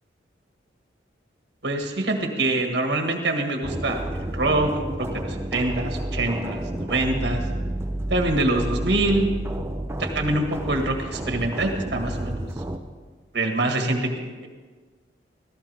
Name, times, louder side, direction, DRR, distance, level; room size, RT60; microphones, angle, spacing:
voice 1, 1.6-4.7 5.0-7.5 8.1-9.2 10.0-12.5 13.3-14.1, right 2 dB, 60° right, 3 dB, 1.7 m, -25 dB
sound 1, 3.6-12.8, right 1 dB, 15° right, 0.7 m, -30 dB
16.5 x 14.5 x 3.5 m, 1.4 s
head